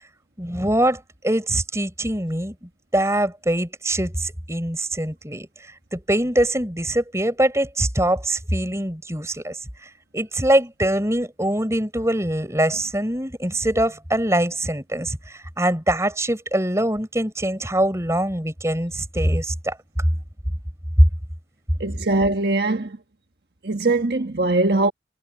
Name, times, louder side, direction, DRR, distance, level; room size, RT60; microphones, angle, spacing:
voice 1, 0.4-20.1 21.0-21.1, right 1 dB, 15° right, 4.8 m, -23 dB
voice 2, 21.8-23.0 23.6-24.9, right 2 dB, 60° right, 1.4 m, -21 dB
head